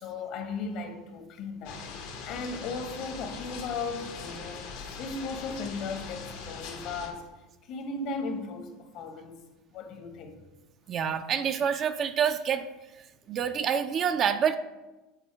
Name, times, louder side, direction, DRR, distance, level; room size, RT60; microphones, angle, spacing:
voice 1, 0.0-1.9 2.3-4.7 5.0-7.3 7.6-9.4 9.7-10.4, left 4 dB, 60° left, 1.4 m, -36 dB
sound 1, 1.6-7.1, left 5 dB, 75° left, 1.6 m, -41 dB
voice 2, 10.9-12.6 13.3-14.6, right 8 dB, 40° right, 0.6 m, -27 dB
8.9 x 4.1 x 4.7 m
supercardioid pair, 100°, 0 cm